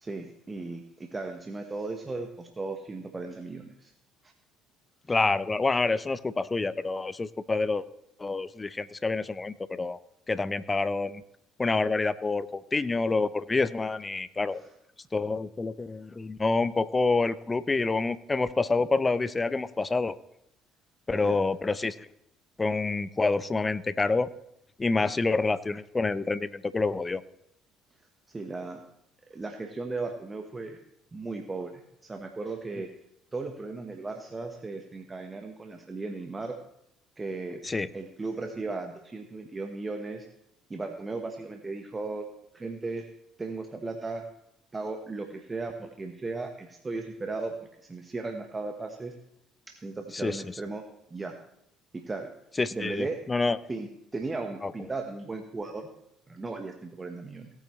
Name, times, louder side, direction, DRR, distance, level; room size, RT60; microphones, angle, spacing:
voice 1, 0.0-3.9 4.2-4.3 14.6-14.7 21.1-21.4 25.0-25.1 28.3-28.8 29.3-30.8 31.1-32.9 33.3-36.6 37.2-37.6 37.9-40.3 40.7-42.3 42.5-43.1 43.4-44.3 44.7-49.2 49.7-50.8 51.1-51.4 51.9-52.3 52.7-53.2 53.7-53.9 54.1-55.9 56.3-57.5, right 3 dB, 25° right, 4 dB, 1.2 m, -36 dB
voice 2, 5.1-7.8 8.2-10.0 10.3-11.2 11.6-14.6 15.1-20.2 21.1-22.1 22.6-24.3 24.8-27.2 37.6-37.9 50.1-50.4 52.6-53.6 54.6-54.7, left 3 dB, 25° left, 16 dB, 0.6 m, -27 dB
17.5 x 8.9 x 3.2 m, 0.77 s
hypercardioid pair, 55°, 0 cm